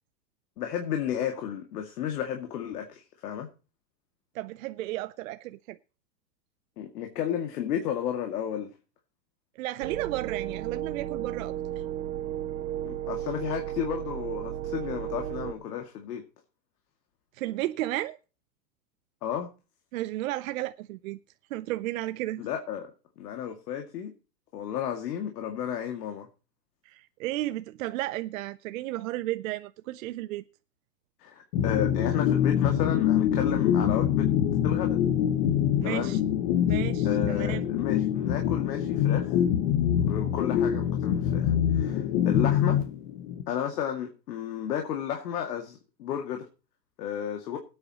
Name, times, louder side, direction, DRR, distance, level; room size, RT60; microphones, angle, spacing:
voice 1, 0.6-3.5 6.8-8.7 12.8-16.2 19.2-19.5 22.4-22.9 23.2-24.1 24.5-26.3 31.2-34.3 34.6-35.0 35.8-36.2 37.0-39.4 40.0-42.8 43.5-46.5 47.0-47.6, left 9 dB, 70° left, 2.3 m, -33 dB
voice 2, 4.3-5.8 9.6-11.5 17.3-18.2 19.9-21.2 21.5-22.5 26.9-30.4 35.8-36.2 36.7-37.6, right 16 dB, 55° right, 0.7 m, -33 dB
sound 1, 9.8-15.5, right 12 dB, 90° right, 0.9 m, -34 dB
sound 2, 31.5-43.4, left 10 dB, 50° left, 1.6 m, -25 dB
20.5 x 9.0 x 3.0 m
hypercardioid pair, 135°, 49 cm